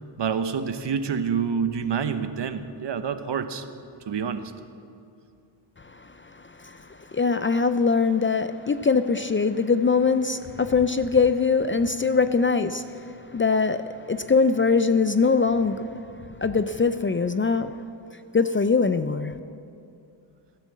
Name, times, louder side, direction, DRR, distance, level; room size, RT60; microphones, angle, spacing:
voice 1, 0.2-3.6 4.1-4.4, right 6 dB, 60° right, 1.0 m, -27 dB
voice 2, 5.8-15.9 16.4-17.7 18.3-19.3, left 4 dB, 25° left, 0.4 m, -22 dB
16.0 x 9.0 x 7.5 m
cardioid pair, 75°, 49 cm